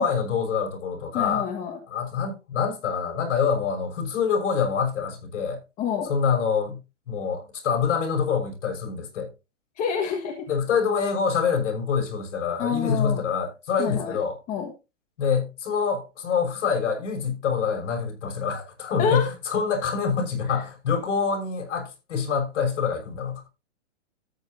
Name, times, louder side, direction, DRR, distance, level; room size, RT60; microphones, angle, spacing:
voice 1, 0.0-1.5 1.9-5.6 6.0-6.8 7.1-9.3 10.5-14.4 15.2-23.4, left 6 dB, 65° left, 6.3 m, -26 dB
voice 2, 1.1-1.8 5.8-6.1 9.8-10.5 12.6-13.2 13.8-14.2 14.5-14.7 19.0-19.3, left 7 dB, 20° left, 1.5 m, -27 dB
13.5 x 9.3 x 2.7 m
hypercardioid pair, 155°, 37 cm